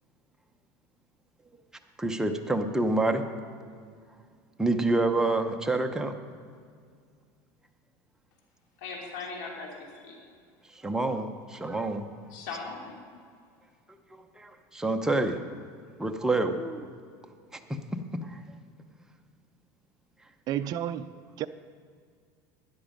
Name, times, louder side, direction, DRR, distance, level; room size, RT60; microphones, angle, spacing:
voice 1, 2.0-3.3 4.6-6.1 10.7-12.1 14.1-15.4 16.0-16.9 17.5-18.4, right 2 dB, 5° right, 0.8 m, -28 dB
voice 2, 8.8-10.1 12.3-13.0, left 4 dB, 85° left, 3.1 m, -39 dB
voice 3, 20.5-21.5, right 11 dB, 40° right, 0.4 m, -32 dB
12.5 x 10.0 x 5.3 m
supercardioid pair, 125°, 10 cm